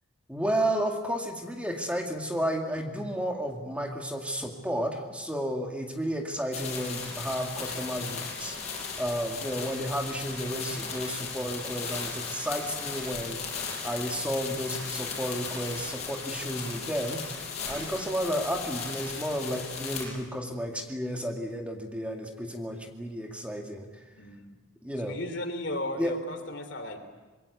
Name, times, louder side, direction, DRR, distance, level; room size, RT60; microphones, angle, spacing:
voice 1, 0.3-8.6 9.0-13.4 13.8-17.2 17.7-23.9 24.8-25.2 26.0-26.1, equal, 5° right, 2 dB, 2.1 m, -32 dB
sound 1, 6.5-20.1, left 5 dB, 35° left, 6.7 m, -36 dB
voice 2, 17.6-17.9 24.2-24.6 25.1-27.2, left 1 dB, 60° left, 7 dB, 3.1 m, -36 dB
25.5 x 22.5 x 8.2 m, 1.3 s
head